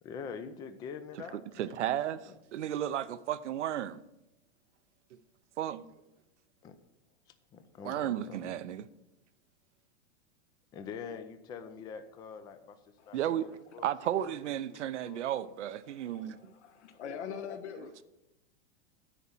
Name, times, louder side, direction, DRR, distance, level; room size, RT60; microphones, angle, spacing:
voice 1, 0.0-2.3 6.6-6.8 7.5-8.6 10.7-12.8 13.0-15.2, left 6 dB, 10° left, 0.3 m, -45 dB
voice 2, 1.6-4.0 5.6-5.9 7.8-8.9 13.1-13.5 13.8-16.5, right 11 dB, 85° right, 0.7 m, -33 dB
voice 3, 15.8-18.0, left 7 dB, 75° left, 1.4 m, -44 dB
10.0 x 4.3 x 7.3 m
hypercardioid pair, 135°, 35 cm